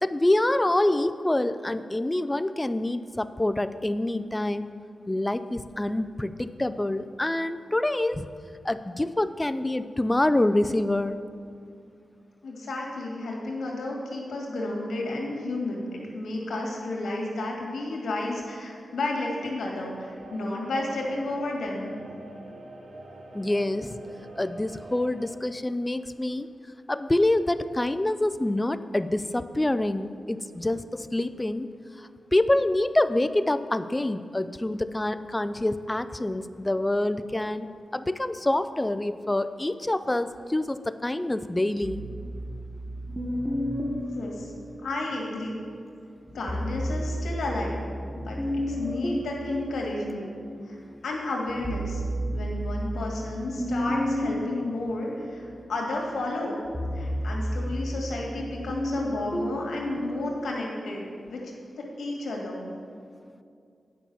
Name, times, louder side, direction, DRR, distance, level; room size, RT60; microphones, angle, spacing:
voice 1, 0.0-4.7 5.1-8.3 8.6-11.2 23.3-24.0 24.4-26.5 26.9-31.7 32.0-37.7 37.9-42.0, left 1 dB, 20° left, 12 dB, 0.4 m, -26 dB
voice 2, 12.4-21.9 44.1-44.5 44.8-45.6 46.3-47.8 48.1-48.4 48.7-50.4 50.6-50.8 51.0-52.0 52.3-56.6 56.9-62.7, left 2 dB, 85° left, -2 dB, 2.1 m, -32 dB
sound 1, 19.5-25.3, right 2 dB, 75° right, 1.4 m, -46 dB
sound 2, 41.8-45.3 46.3-50.7 51.1-60.4, equal, 15° right, 1.2 m, -32 dB
9.8 x 5.7 x 7.0 m, 2.4 s
cardioid pair, 70°, 0 cm